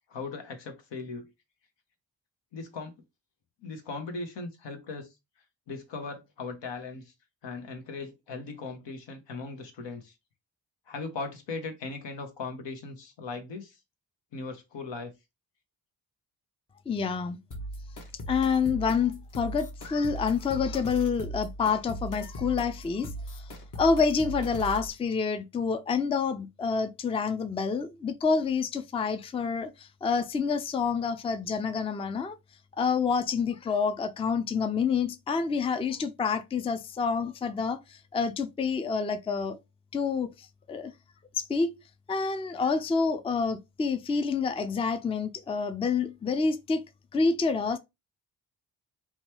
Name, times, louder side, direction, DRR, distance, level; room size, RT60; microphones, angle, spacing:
voice 1, 0.1-1.3 2.5-2.9 3.6-5.1 5.7-7.1 7.4-10.2 10.9-13.8 14.3-15.1, left 3 dB, 75° left, 0.9 m, -38 dB
voice 2, 16.9-17.4 18.3-23.5 23.8-32.4 32.8-39.6 39.9-40.9 41.3-41.7 42.1-46.8 47.1-47.8, left 5 dB, 15° left, 0.4 m, -28 dB
Glitch Drumloop, 17.5-24.9, right 1 dB, 45° left, 1.0 m, -39 dB
2.8 x 2.2 x 3.0 m
supercardioid pair, 45°, 44 cm